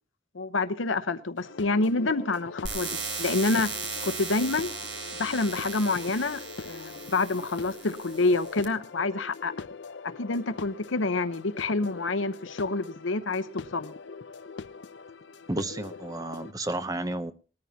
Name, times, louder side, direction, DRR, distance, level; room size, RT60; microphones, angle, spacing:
voice 1, 0.3-3.7 4.0-4.7 5.2-9.5 10.0-13.9, left 3 dB, 85° left, 0.9 m, -28 dB
sound 1, 1.4-16.5, left 4 dB, 65° left, 0.6 m, -42 dB
sound 2, 2.6-8.6, right 4 dB, 75° right, 3.9 m, -37 dB
voice 2, 15.5-17.3, right 1 dB, 20° right, 0.7 m, -32 dB
20.0 x 14.0 x 2.8 m
head